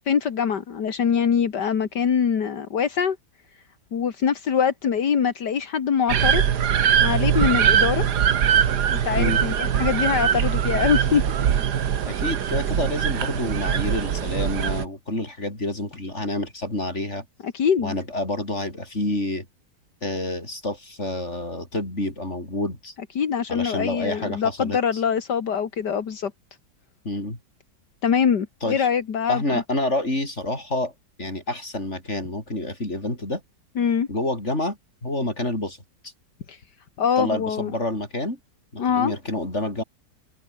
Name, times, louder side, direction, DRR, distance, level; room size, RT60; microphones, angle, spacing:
voice 1, 0.1-3.2 3.9-6.5 7.0-8.0 8.9-11.2 17.4-17.9 23.2-26.3 28.0-29.6 33.8-34.1 36.5-36.6 37.0-37.7 38.8-39.1, left 7 dB, 75° left, 2.3 m, -23 dB
sound 1, 6.1-14.8, right 8 dB, 75° right, 1.9 m, -22 dB
voice 2, 12.1-17.2 17.8-19.5 20.0-22.9 23.5-24.8 27.1-27.4 28.6-28.9 29.3-30.9 31.2-33.4 34.1-35.8 37.2-38.4 38.7-39.8, left 1 dB, 40° left, 7.3 m, -28 dB
omnidirectional pair, 1.8 m